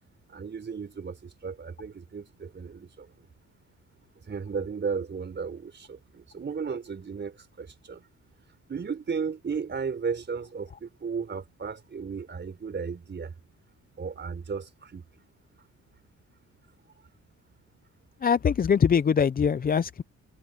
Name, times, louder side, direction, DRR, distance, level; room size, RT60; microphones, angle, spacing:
voice 1, 0.3-3.1 4.3-8.0 8.7-13.3 14.0-15.0, right 5 dB, 35° right, 4.1 m, -34 dB
voice 2, 18.2-20.0, left 7 dB, 30° left, 0.6 m, -22 dB
cardioid pair, 90°, 30 cm